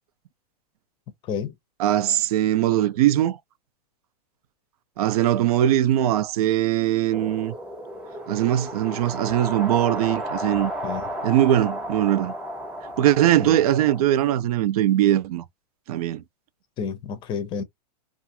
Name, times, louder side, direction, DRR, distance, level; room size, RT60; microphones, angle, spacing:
voice 1, 1.8-3.4 5.0-7.5 8.3-10.7 11.2-12.3 13.0-15.4 15.9-16.2, right 12 dB, 65° right, 0.5 m, -21 dB
sound 1, 7.1-14.0, equal, 5° right, 0.9 m, -33 dB
voice 2, 16.8-17.6, left 6 dB, 25° left, 0.6 m, -30 dB
2.5 x 2.4 x 2.8 m
supercardioid pair, 150°, 21 cm